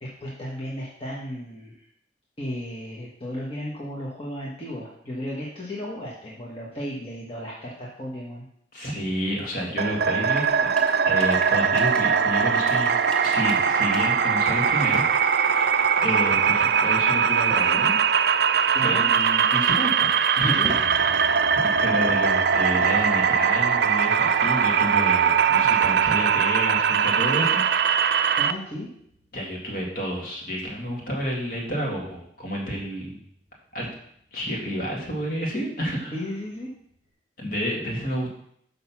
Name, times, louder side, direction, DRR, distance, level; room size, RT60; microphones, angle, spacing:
voice 1, 0.0-1.9 2.4-8.4 18.7-19.1 20.4-20.7 28.4-28.9 36.1-36.7, equal, 30° left, -5 dB, 1.3 m, -34 dB
voice 2, 8.7-10.6 11.1-15.7 16.0-18.0 18.8-20.1 20.4-20.7 21.5-27.6 29.3-33.2 33.7-33.9 34.3-36.1 37.4-38.3, equal, 50° left, -2 dB, 2.1 m, -30 dB
sound 1, 9.4-9.7 10.4-15.9 16.7-16.8 17.7-17.8 18.0-18.1 18.5-19.9 20.3-21.9, equal, 5° left, 0.8 m, -43 dB
sound 2, 9.8-28.5, right 7 dB, 60° right, 0.4 m, -21 dB
sound 3, 20.6-37.1, equal, 20° right, 1.4 m, -47 dB
6.5 x 5.4 x 5.9 m, 0.70 s
head